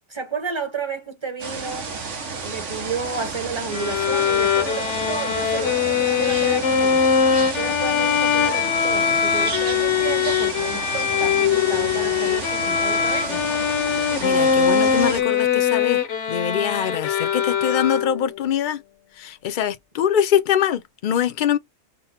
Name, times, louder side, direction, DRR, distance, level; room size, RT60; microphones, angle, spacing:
voice 1, 0.1-1.9 2.4-7.0 7.4-13.4, right 5 dB, 25° right, 1.0 m, -31 dB
sound 1, 1.4-15.2, right 4 dB, 70° right, 1.5 m, -31 dB
Bowed string instrument, 3.7-18.4, left 7 dB, 70° left, 1.0 m, -21 dB
voice 2, 14.0-18.8 19.2-21.6, left 9 dB, 50° left, 0.6 m, -23 dB
5.3 x 2.1 x 4.2 m
omnidirectional pair, 1.3 m